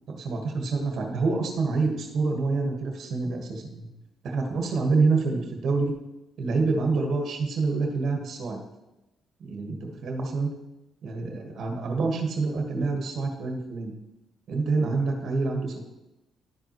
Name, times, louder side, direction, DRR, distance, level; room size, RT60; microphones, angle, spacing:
voice 1, 0.1-3.9 4.2-5.9 6.4-8.6 9.4-10.5 11.0-13.9 14.5-15.8, right 3 dB, 65° right, 2 dB, 1.4 m, -27 dB
11.5 x 4.6 x 3.0 m, 0.98 s
cardioid pair, 90°, 0 cm